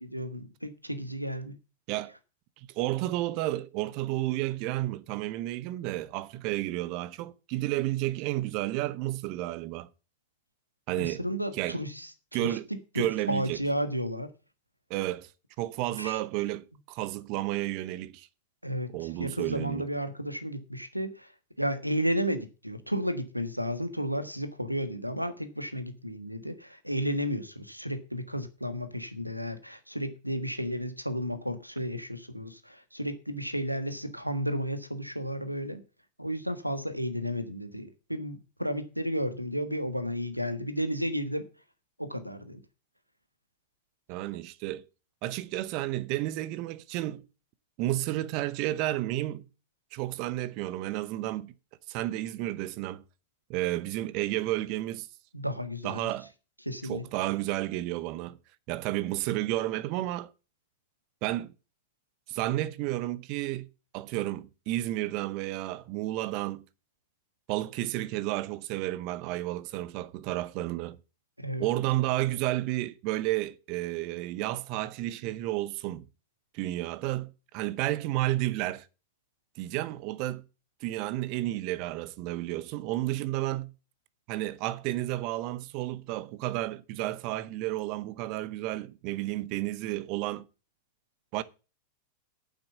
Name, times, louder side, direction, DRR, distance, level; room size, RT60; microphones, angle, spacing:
voice 1, 0.0-1.5 11.0-12.1 12.4-12.6 12.9-14.3 16.0-16.2 18.6-21.3 21.6-35.8 36.2-41.4 42.0-42.6 55.3-56.1 56.6-57.0 71.4-71.7, equal, 90° right, 1.4 m, -33 dB
voice 2, 2.6-9.9 10.9-11.2 11.6-11.8 12.3-12.6 12.9-13.6 14.9-15.3 15.6-18.3 18.9-19.8 44.1-44.8 45.2-47.2 47.8-49.4 49.9-51.5 51.9-53.0 53.5-55.1 55.8-56.3 56.9-58.4 58.7-60.3 61.2-61.5 62.3-63.7 63.9-66.6 67.5-71.0 71.6-76.0 76.5-78.9 79.6-80.4 80.8-83.7 84.3-90.5 91.3-91.4, right 16 dB, 45° right, 0.9 m, -31 dB
9.1 x 7.5 x 7.1 m
figure-of-eight pair, 90°, 0 cm